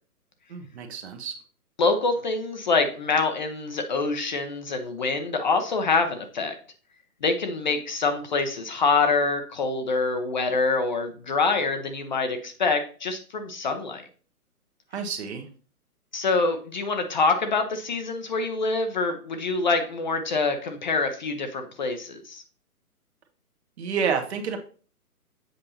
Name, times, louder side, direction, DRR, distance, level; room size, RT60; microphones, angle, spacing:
voice 1, 0.5-1.3 14.9-15.5 23.8-24.6, right 6 dB, 45° right, 5 dB, 1.2 m, -29 dB
voice 2, 1.8-6.5 7.2-14.1 16.1-22.4, left 4 dB, 30° left, 6 dB, 0.6 m, -25 dB
7.8 x 5.5 x 2.8 m, 0.40 s
figure-of-eight pair, 135°, 46 cm